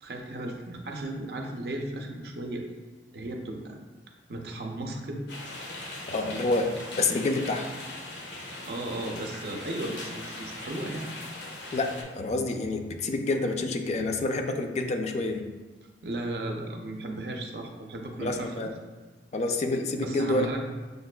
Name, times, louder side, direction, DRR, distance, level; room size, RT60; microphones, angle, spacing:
voice 1, 0.0-2.7 3.1-3.8 4.3-5.2 8.6-11.1 16.0-18.7 20.0-20.6, right 1 dB, 60° right, 2 dB, 0.5 m, -35 dB
sound 1, 5.3-12.0, left 2 dB, 90° left, 0.8 m, -40 dB
voice 2, 6.1-6.7 7.0-7.7 11.7-15.4 18.2-18.7 19.3-20.5, left 2 dB, 40° left, 5 dB, 0.3 m, -28 dB
6.5 x 2.4 x 2.2 m, 1.3 s
head